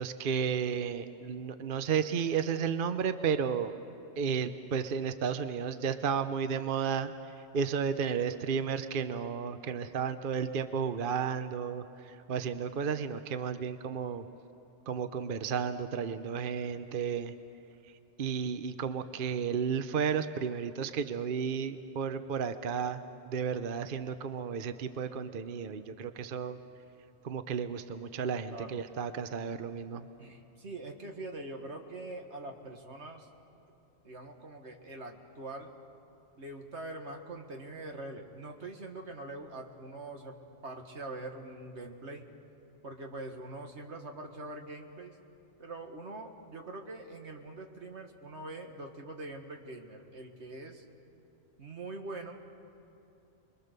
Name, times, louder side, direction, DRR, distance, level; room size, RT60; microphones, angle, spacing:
voice 1, 0.0-3.8 4.2-7.1 7.5-14.3 14.9-17.3 18.2-26.6 27.2-30.1, right 7 dB, 55° right, 10 dB, 0.9 m, -33 dB
voice 2, 28.5-28.8 30.2-33.3 34.0-35.7 36.4-42.3 42.8-45.2 45.6-50.9 51.6-52.4, right 2 dB, 85° right, 3 dB, 2.1 m, -43 dB
29.5 x 22.5 x 6.7 m, 2.9 s
omnidirectional pair, 1.1 m